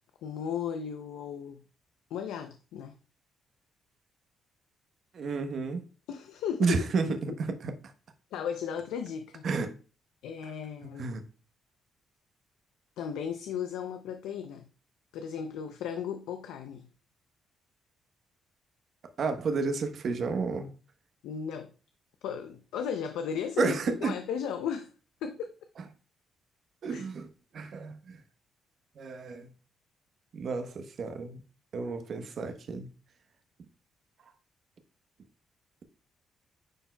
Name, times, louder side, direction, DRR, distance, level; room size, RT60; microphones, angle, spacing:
voice 1, 0.2-1.6 2.1-3.0 6.1-6.8 7.3-7.4 8.3-9.4 10.2-11.2 13.0-14.7 15.1-16.9 21.2-21.7 22.2-24.9 25.2-25.5 26.9-27.1, left 7 dB, 85° left, 0.5 m, -35 dB
voice 2, 5.1-5.8 6.6-7.7 9.4-9.7 11.0-11.2 19.2-20.7 23.6-24.2 26.8-27.3 27.5-28.2 29.0-29.5 30.3-31.4 31.7-32.9, right 4 dB, 60° right, 1.0 m, -31 dB
9.8 x 4.4 x 2.3 m
cardioid pair, 75°, 0 cm